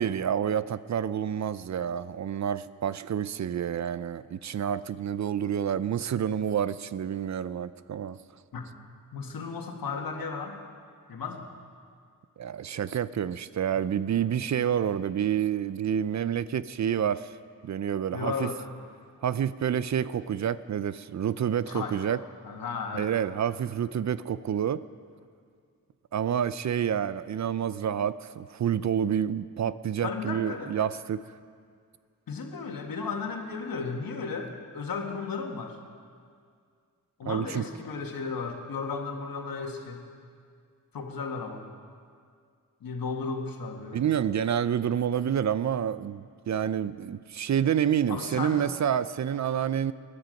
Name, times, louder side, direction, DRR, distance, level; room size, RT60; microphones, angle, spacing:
voice 1, 0.0-8.2 12.4-17.3 17.6-18.5 19.2-22.2 22.9-24.8 26.1-31.2 37.2-37.6 43.9-49.9, right 9 dB, 55° right, 16 dB, 0.5 m, -28 dB
voice 2, 9.1-10.6 11.1-11.5 18.1-18.7 21.7-22.0 22.4-23.1 30.0-30.7 32.3-35.8 37.2-40.0 40.9-41.6 42.8-44.0 48.1-48.7, left 4 dB, 80° left, 2 dB, 1.8 m, -34 dB
20.0 x 12.0 x 5.3 m, 2.2 s
cardioid pair, 75°, 34 cm